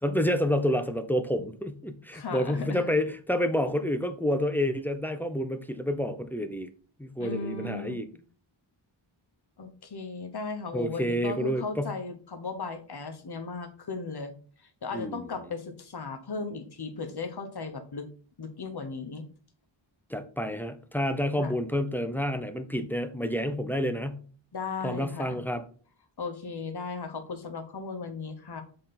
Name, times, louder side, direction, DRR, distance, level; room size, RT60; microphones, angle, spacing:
voice 1, 0.0-6.7 7.0-8.1 10.7-11.9 14.9-15.3 20.1-24.2 24.8-25.6, equal, 5° left, 8 dB, 0.7 m, -29 dB
voice 2, 2.1-2.9 7.2-8.2 9.6-14.3 14.6-18.1 18.4-19.2 21.4-21.5 24.5-25.4 26.2-28.6, left 4 dB, 55° left, 6 dB, 1.2 m, -36 dB
7.4 x 3.8 x 4.3 m, 0.42 s
wide cardioid pair, 80°, 48 cm